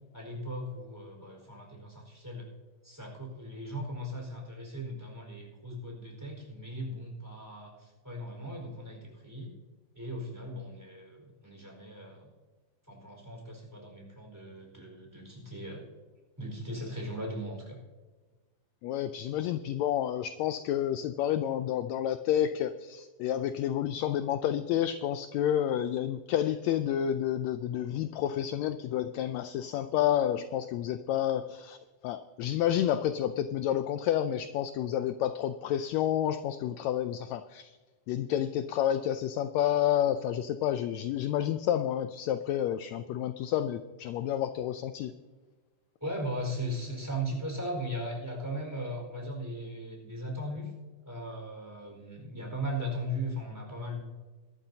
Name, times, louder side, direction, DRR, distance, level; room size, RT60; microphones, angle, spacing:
voice 1, 0.1-2.5 2.8-9.5 9.9-12.3 12.9-15.8 16.4-17.8 46.0-50.7 51.0-54.0, equal, 5° right, 0 dB, 4.3 m, -38 dB
voice 2, 18.8-31.8 32.0-37.8 38.1-45.1, left 11 dB, 80° left, 10 dB, 1.6 m, -30 dB
22.0 x 13.0 x 2.8 m, 1.3 s
omnidirectional pair, 3.6 m